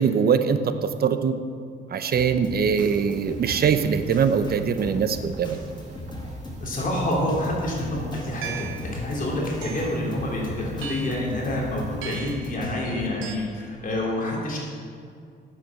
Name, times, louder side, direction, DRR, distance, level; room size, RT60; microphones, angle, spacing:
voice 1, 0.0-1.3 1.9-5.6, right 6 dB, 50° right, 10 dB, 0.8 m, -22 dB
Drum kit, 2.1-12.8, left 1 dB, 20° left, 1.9 m, -38 dB
sound 1, 3.1-13.6, right 2 dB, 35° right, 1.9 m, -46 dB
voice 2, 6.6-14.6, left 1 dB, 45° left, -3 dB, 3.2 m, -28 dB
sound 2, 8.4-8.9 9.6-10.0 10.8-11.3 12.0-12.5 13.2-13.4, right 9 dB, 90° right, 0.8 m, -37 dB
8.9 x 7.7 x 7.1 m, 2.3 s
cardioid pair, 90°, 20 cm